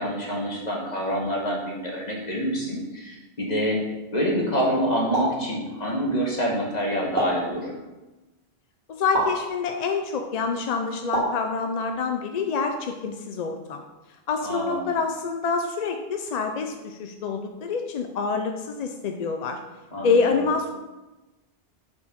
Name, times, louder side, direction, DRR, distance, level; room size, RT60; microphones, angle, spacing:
voice 1, 0.0-3.8 4.1-7.7 14.4-14.9 19.9-20.5, equal, 40° left, -2 dB, 1.5 m, -27 dB
sound 1, 5.1-5.4 7.2-7.5 9.1-9.4 11.1-11.4, right 2 dB, 45° right, 2.0 m, -25 dB
voice 2, 8.9-13.8 14.3-19.6 20.0-20.7, left 5 dB, 55° left, 5 dB, 0.4 m, -26 dB
5.4 x 4.5 x 5.1 m, 1.1 s
omnidirectional pair, 1.2 m